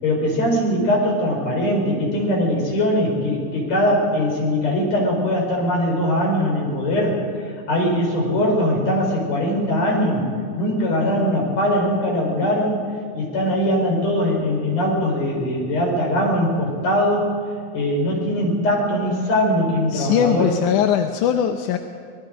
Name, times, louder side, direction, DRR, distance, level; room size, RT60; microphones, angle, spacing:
voice 1, 0.0-7.1 7.7-10.3 10.6-12.8 13.1-17.3 17.7-20.5, left 1 dB, 60° left, -1 dB, 6.0 m, -21 dB
voice 2, 19.9-21.8, left 9 dB, 85° left, 6 dB, 2.3 m, -20 dB
25.5 x 20.0 x 5.1 m, 2.2 s
omnidirectional pair, 3.5 m